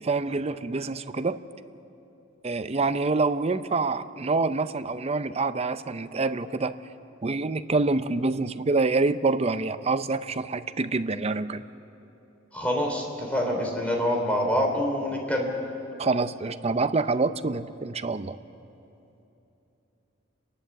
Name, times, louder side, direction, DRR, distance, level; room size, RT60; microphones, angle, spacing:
voice 1, 0.0-1.4 2.4-6.7 7.2-11.6 16.0-18.4, right 3 dB, 30° right, 12 dB, 0.6 m, -26 dB
voice 2, 12.5-15.5, equal, 5° left, 0 dB, 3.6 m, -26 dB
30.0 x 11.5 x 8.2 m, 2.9 s
head